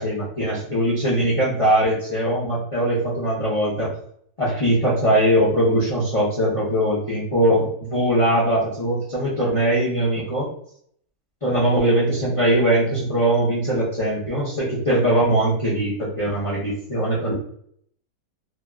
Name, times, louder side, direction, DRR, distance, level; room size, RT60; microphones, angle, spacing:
voice 1, 0.0-3.9 4.4-10.5 11.4-17.3, right 1 dB, 45° left, -8 dB, 0.4 m, -21 dB
3.2 x 2.3 x 2.3 m, 0.66 s
omnidirectional pair, 1.7 m